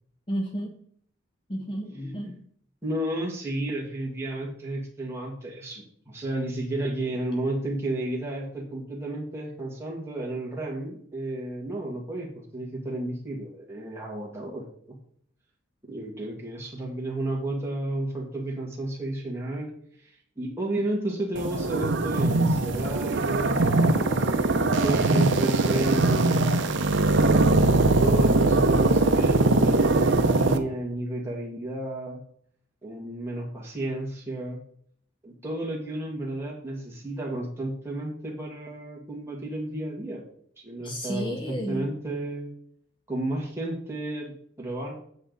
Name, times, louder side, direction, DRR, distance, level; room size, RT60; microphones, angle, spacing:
voice 1, 0.3-0.7 1.5-2.4 40.8-41.9, equal, 25° left, 3 dB, 0.8 m, -32 dB
voice 2, 2.8-14.7 15.8-19.7 20.4-26.4 27.1-32.2 32.8-34.6 35.2-40.2 40.6-42.5 43.1-44.9, right 1 dB, 10° right, -3 dB, 2.0 m, -32 dB
sound 1, 21.4-30.6, right 2 dB, 60° right, 0.7 m, -21 dB
8.6 x 6.8 x 4.0 m, 0.64 s
head